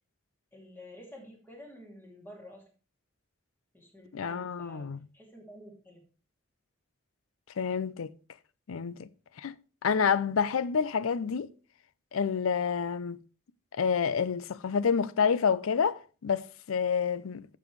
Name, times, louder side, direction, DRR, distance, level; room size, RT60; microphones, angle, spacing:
voice 1, 0.5-2.6 3.7-4.9 5.1-6.0, equal, 10° left, 2.6 m, -50 dB
voice 2, 4.1-5.0 7.6-8.1 8.7-9.1 9.4-9.6 9.8-11.5 12.1-13.2 13.7-17.5, left 6 dB, 85° left, 0.5 m, -28 dB
12.0 x 7.0 x 3.1 m
head